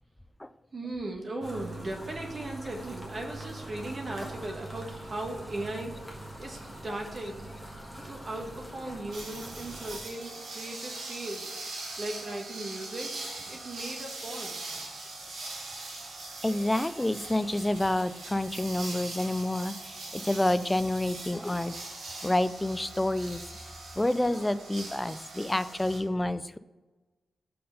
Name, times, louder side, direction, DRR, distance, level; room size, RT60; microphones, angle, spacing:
voice 1, 0.7-7.5 8.0-11.6 12.0-13.2 13.5-14.7, right 2 dB, 45° right, 1 dB, 1.2 m, -38 dB
sound 1, 1.4-10.0, right 1 dB, 5° right, 1.3 m, -43 dB
sound 2, 9.1-26.0, right 2 dB, 85° right, 1.9 m, -41 dB
voice 2, 16.4-21.7 22.2-23.4 24.0-26.6, left 1 dB, 15° left, 13 dB, 0.3 m, -28 dB
5.6 x 4.3 x 5.3 m, 1.2 s
cardioid pair, 95°, 0 cm